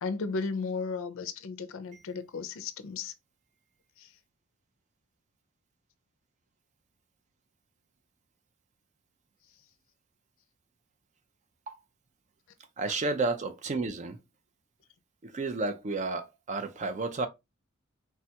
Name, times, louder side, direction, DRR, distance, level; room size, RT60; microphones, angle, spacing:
voice 1, 0.0-3.1 4.0-4.1, left 4 dB, 65° left, 0.4 m, -34 dB
voice 2, 12.8-14.2 15.2-17.3, right 3 dB, 35° right, 0.4 m, -31 dB
3.3 x 2.2 x 2.8 m
head